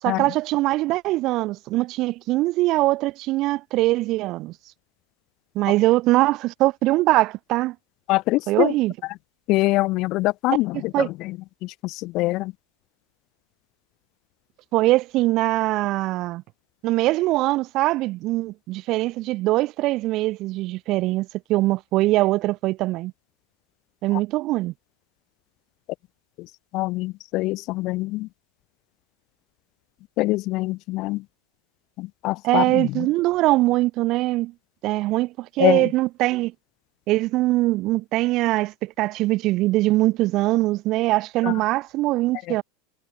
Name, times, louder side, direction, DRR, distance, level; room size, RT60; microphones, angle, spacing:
voice 1, 0.0-4.5 5.5-7.7 8.5-8.9 10.9-11.1 14.7-16.4 16.8-23.1 24.0-24.7 32.4-34.5 34.8-36.5 37.1-42.6, right 18 dB, 45° right, 4.3 m, -22 dB
voice 2, 8.1-8.7 9.5-12.5 24.1-24.2 26.4-26.5 26.7-28.3 30.2-31.2 32.0-33.1 35.6-35.9 41.4-41.5 42.5-42.6, left 20 dB, 50° left, 3.7 m, -24 dB
figure-of-eight pair, 85°, 0 cm